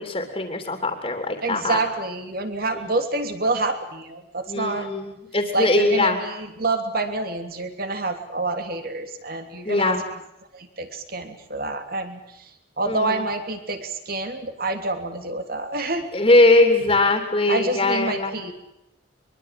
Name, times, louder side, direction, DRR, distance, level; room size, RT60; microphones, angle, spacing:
voice 1, 0.0-1.8 4.5-6.2 9.6-10.0 12.9-13.3 16.1-18.4, left 2 dB, 30° left, 5 dB, 3.2 m, -21 dB
voice 2, 1.4-4.9 5.5-10.0 10.5-12.5 12.8-16.1 17.5-18.5, right 2 dB, 50° right, 7 dB, 3.1 m, -27 dB
23.5 x 23.5 x 7.7 m, 0.83 s
head